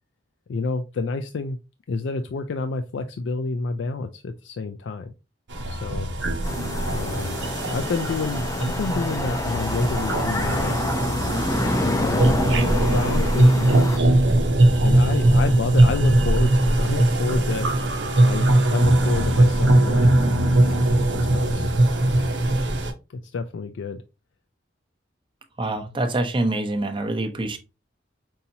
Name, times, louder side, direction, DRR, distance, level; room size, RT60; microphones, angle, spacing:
voice 1, 0.5-1.6 1.9-5.1 5.7-6.1 6.9-7.4 7.7-10.8 11.8-12.4 12.7-14.1 14.8-17.7 18.2-20.1 20.4-20.9 21.1-21.7 22.0-22.3 23.2-24.0, left 4 dB, 75° left, 0.4 m, -29 dB
sound 1, 5.5-22.9, right 1 dB, 75° right, 0.8 m, -20 dB
sound 2, 6.4-14.0, left 1 dB, 20° left, 0.5 m, -27 dB
voice 2, 25.6-27.6, right 2 dB, 30° right, 0.7 m, -25 dB
5.4 x 2.7 x 2.7 m
head